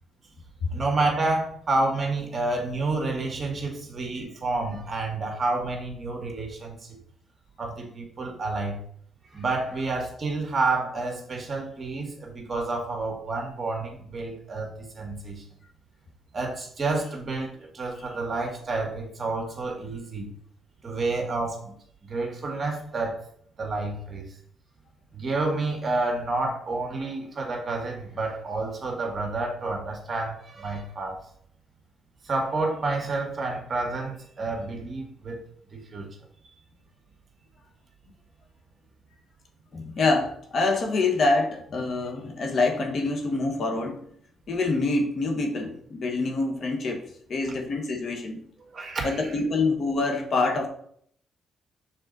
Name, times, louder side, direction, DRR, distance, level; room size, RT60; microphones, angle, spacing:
voice 1, 0.7-7.0 7.6-8.8 9.3-15.4 16.3-20.3 20.8-21.8 22.0-23.2 23.6-24.3 25.1-31.2 32.2-35.4 35.7-36.1 48.7-49.4, right 3 dB, 35° right, 2 dB, 1.8 m, -29 dB
voice 2, 39.7-44.0 44.5-47.0 47.3-48.4 49.0-50.7, left 3 dB, 55° left, 4 dB, 1.3 m, -26 dB
6.5 x 4.3 x 4.0 m, 0.64 s
cardioid pair, 90°, 0 cm